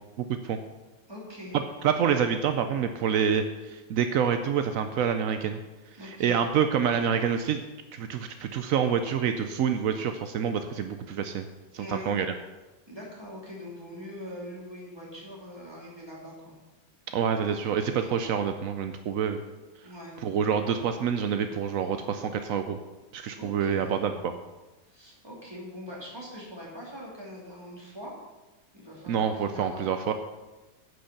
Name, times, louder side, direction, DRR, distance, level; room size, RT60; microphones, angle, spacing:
voice 1, 0.2-0.6 1.5-5.6 6.0-7.6 7.9-11.4 11.7-12.3 17.1-19.4 20.2-22.8 23.1-24.3 29.1-30.1, right 7 dB, 75° right, 8 dB, 0.7 m, -27 dB
voice 2, 1.1-1.6 6.0-6.4 11.8-12.1 12.9-16.5 19.8-20.2 23.4-24.0 24.9-28.1 28.7-29.9, equal, 10° right, -4 dB, 3.2 m, -42 dB
9.8 x 6.6 x 7.0 m, 1.1 s
omnidirectional pair, 2.1 m